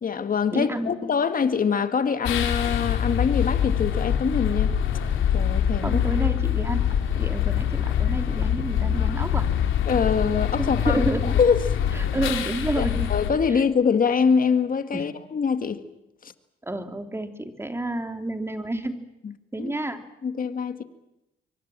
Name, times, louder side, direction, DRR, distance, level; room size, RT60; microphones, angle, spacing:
voice 1, 0.0-4.7 5.3-6.0 9.9-11.1 11.4-11.6 12.8-15.8 16.2-16.3 19.2-19.3 19.6-19.7 20.2-20.8, left 6 dB, 45° left, 2.0 m, -24 dB
voice 2, 0.5-1.0 5.8-6.9 7.1-9.5 10.6-11.4 11.9-13.1 13.5-13.6 14.9-15.0 16.6-19.0 19.5-20.0, right 1 dB, 10° right, 2.9 m, -29 dB
sound 1, 2.3-13.3, left 9 dB, 80° left, 3.2 m, -24 dB
26.5 x 23.5 x 7.6 m
cardioid pair, 90°, 20 cm